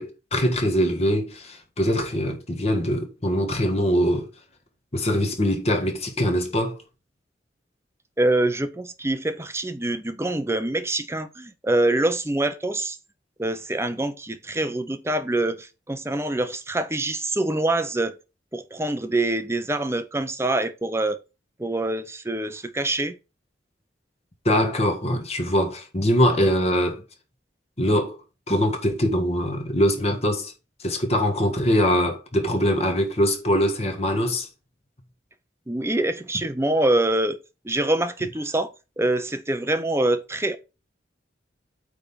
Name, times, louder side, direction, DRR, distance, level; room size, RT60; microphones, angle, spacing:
voice 1, 0.0-4.3 4.9-6.8 24.5-27.0 27.8-28.2 28.5-30.5 30.8-34.5, equal, 35° left, 1.6 m, -22 dB
voice 2, 8.2-13.0 13.4-18.1 18.5-21.2 21.6-23.2 35.7-37.4 37.6-38.7 39.0-40.6, right 2 dB, 15° right, 0.8 m, -25 dB
8.8 x 3.6 x 5.7 m
head